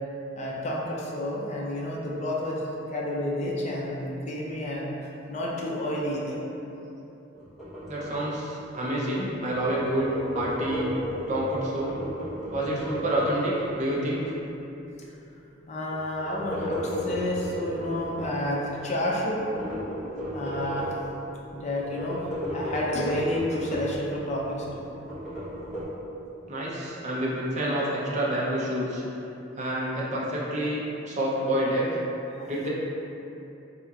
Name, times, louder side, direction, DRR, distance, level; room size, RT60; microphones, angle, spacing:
voice 1, 0.4-2.6 2.9-4.9 5.3-6.4 15.7-19.6 20.3-20.9 21.5-22.2 22.5-24.9 32.4-32.5, left 1 dB, 35° left, -3 dB, 0.5 m, -30 dB
sound 1, 7.3-9.0 9.3-14.1 15.9-18.4 19.3-21.3 21.7-24.1 24.4-25.8, equal, ahead, 0.8 m, -35 dB
voice 2, 7.9-10.9 11.3-12.0 12.5-14.2 26.5-29.0 29.6-32.0 32.5-32.7, right 1 dB, 40° right, -6 dB, 0.6 m, -28 dB
4.1 x 2.8 x 2.4 m, 2.9 s
head